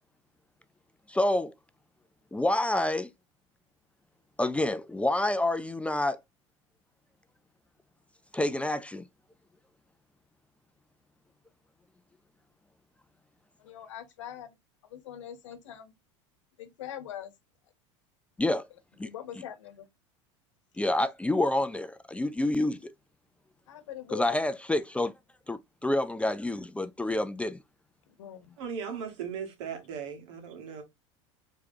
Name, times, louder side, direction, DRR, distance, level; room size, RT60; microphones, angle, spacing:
voice 1, 1.1-1.5 2.3-3.1 4.4-6.2 8.3-9.0 18.4-18.7 19.0-19.1 20.8-22.9 24.1-25.1 25.5-27.6, left 1 dB, 10° left, 0.3 m, -28 dB
voice 2, 13.6-14.6 14.9-15.9 16.6-17.3 19.0-19.9 23.7-24.3 28.1-28.6, left 11 dB, 80° left, 0.9 m, -43 dB
voice 3, 28.6-30.8, right 7 dB, 75° right, 1.5 m, -37 dB
4.8 x 3.1 x 2.7 m
hypercardioid pair, 90°, 16 cm